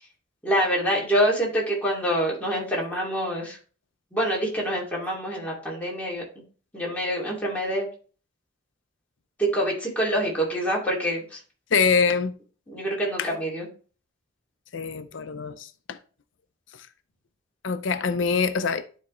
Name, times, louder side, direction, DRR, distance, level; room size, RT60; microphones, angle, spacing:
voice 1, 0.4-3.6 4.1-6.2 6.7-7.8 9.4-11.4 12.7-13.7, equal, 10° left, 2.4 m, -26 dB
voice 2, 11.7-12.3 13.2-13.3 14.7-16.0 17.6-18.8, left 5 dB, 85° left, 0.6 m, -24 dB
12.0 x 4.1 x 3.1 m
head